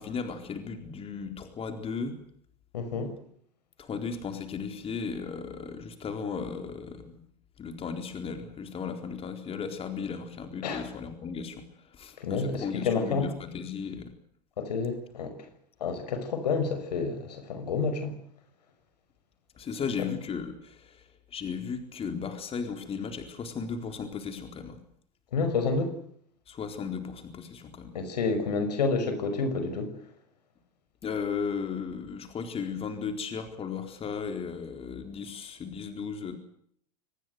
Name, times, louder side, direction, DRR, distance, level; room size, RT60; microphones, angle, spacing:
voice 1, 0.0-2.2 3.8-7.2 7.6-14.1 19.6-24.8 26.5-27.9 31.0-36.4, left 6 dB, 25° left, 4.1 m, -35 dB
voice 2, 2.7-3.2 10.6-10.9 12.2-13.3 14.6-15.3 15.8-18.2 25.3-26.0 27.9-29.9, left 4 dB, 75° left, 5.7 m, -29 dB
26.5 x 19.5 x 8.0 m
hypercardioid pair, 90°, 21 cm